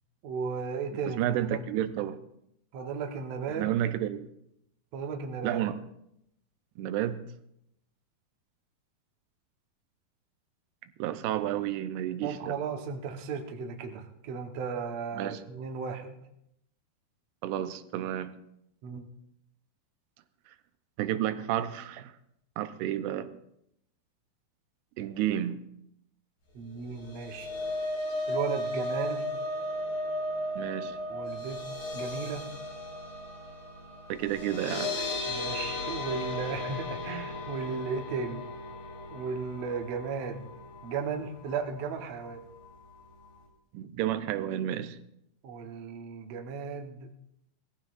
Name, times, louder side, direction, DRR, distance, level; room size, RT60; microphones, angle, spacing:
voice 1, 0.2-1.6 2.7-3.7 4.9-5.6 12.2-16.1 18.8-19.0 26.5-27.5 28.3-29.3 31.1-31.6 31.9-32.5 35.3-38.5 39.1-40.5 40.8-42.4 45.4-47.1, right 5 dB, 65° right, 1.7 m, -35 dB
voice 2, 0.9-2.2 3.5-4.3 5.4-5.8 6.8-7.2 11.0-12.6 15.2-15.4 17.4-18.3 21.0-22.1 22.6-23.3 25.0-25.6 30.6-31.0 34.1-35.1 43.7-45.0, right 12 dB, 90° right, 2.8 m, -31 dB
sound 1, 26.9-41.1 41.5-41.7 42.0-42.1, left 1 dB, 45° left, 5.6 m, -35 dB
19.0 x 14.5 x 2.5 m
omnidirectional pair, 4.5 m